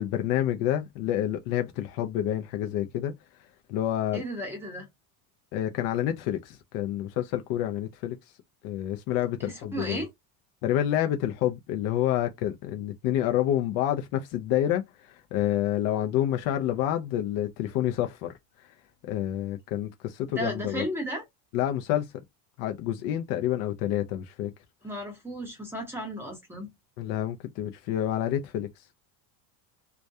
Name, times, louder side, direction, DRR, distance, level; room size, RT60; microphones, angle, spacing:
voice 1, 0.0-3.1 3.7-4.2 5.5-8.2 8.6-10.0 10.6-18.3 18.6-18.7 19.0-20.8 21.5-22.1 22.6-24.5 27.0-28.7, left 12 dB, 55° left, 0.5 m, -28 dB
voice 2, 4.1-4.9 9.5-10.1 20.3-21.2 24.8-26.7, right 1 dB, 5° right, 0.8 m, -34 dB
2.3 x 2.1 x 2.6 m
cardioid pair, 150°, 43 cm